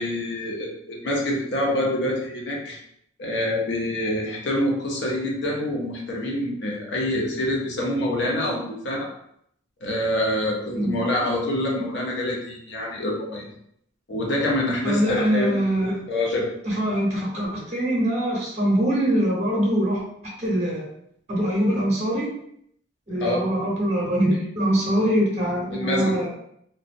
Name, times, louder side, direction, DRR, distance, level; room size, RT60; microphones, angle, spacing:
voice 1, 0.0-2.8 3.2-9.1 9.8-13.5 14.1-15.6 16.1-16.5 23.1-23.4 25.7-26.1, left 1 dB, 65° left, -2 dB, 0.5 m, -26 dB
voice 2, 14.8-16.0 16.6-20.0 20.4-20.9 21.3-22.3 23.1-26.3, equal, 35° right, -4 dB, 0.7 m, -23 dB
2.6 x 2.0 x 2.4 m, 0.71 s
head